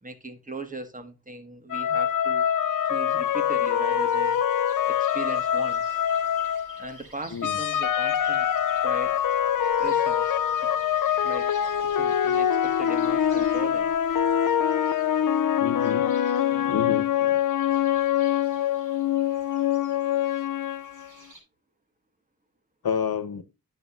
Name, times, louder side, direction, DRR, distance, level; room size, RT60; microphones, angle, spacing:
voice 1, 0.0-2.5 2.9-4.4 4.9-6.0 6.8-8.5 8.8-9.2 9.8-10.4 11.2-11.6 11.9-13.9, right 2 dB, 20° right, 1.7 m, -38 dB
sound 1, 1.7-7.0 7.4-21.1, left 9 dB, 60° left, 0.5 m, -24 dB
sound 2, 1.9-21.4, right 1 dB, 60° right, 4.5 m, -52 dB
voice 2, 15.6-16.1 16.5-17.4 22.8-23.4, left 7 dB, 80° left, 1.1 m, -30 dB
11.0 x 6.6 x 2.6 m
wide cardioid pair, 80°, 36 cm